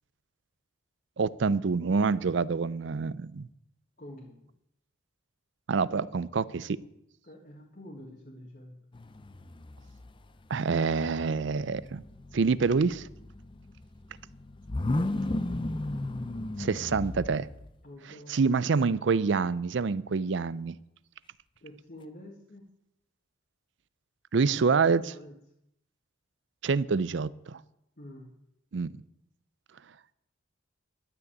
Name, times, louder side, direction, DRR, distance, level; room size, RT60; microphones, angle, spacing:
voice 1, 1.2-3.5 5.7-6.8 10.5-12.0 12.3-13.1 16.6-17.5 18.3-20.8 24.3-25.1 26.6-27.6 28.7-28.9, right 4 dB, 60° right, 18 dB, 0.4 m, -26 dB
voice 2, 4.0-4.4 7.2-8.8 15.0-15.6 17.8-18.3 21.6-22.6 24.8-25.4 28.0-28.3, left 1 dB, 45° left, -1 dB, 1.7 m, -47 dB
sound 1, 8.9-10.4 10.7-17.7, left 2 dB, 25° left, 0.5 m, -35 dB
12.0 x 6.8 x 8.7 m, 0.80 s
head